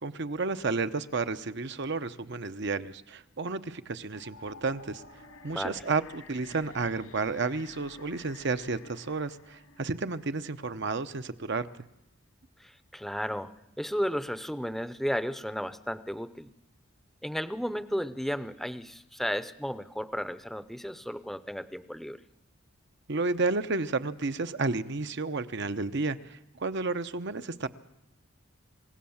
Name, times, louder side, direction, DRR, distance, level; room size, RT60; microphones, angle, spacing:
voice 1, 0.0-5.0 5.4-11.7 23.1-27.7, right 3 dB, 55° right, 10 dB, 0.8 m, -31 dB
sound 1, 4.1-11.2, left 3 dB, 85° left, 2.9 m, -53 dB
voice 2, 5.5-5.8 12.6-13.5 13.8-16.5 17.2-22.2, equal, ahead, 14 dB, 0.7 m, -34 dB
28.0 x 16.5 x 7.2 m, 0.91 s
head